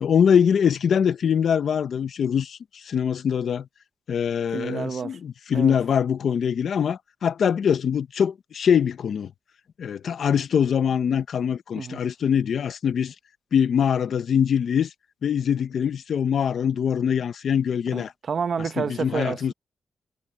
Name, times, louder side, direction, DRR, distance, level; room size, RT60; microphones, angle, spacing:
voice 1, 0.0-2.6 2.8-3.7 4.1-9.3 9.8-13.1 13.5-14.9 15.2-18.1 18.8-19.5, left 7 dB, 55° left, 0.8 m, -23 dB
voice 2, 4.5-5.2 5.5-5.8 11.7-12.0 17.9-19.5, right 6 dB, 45° right, 0.8 m, -29 dB
wide cardioid pair, 155°, 0 cm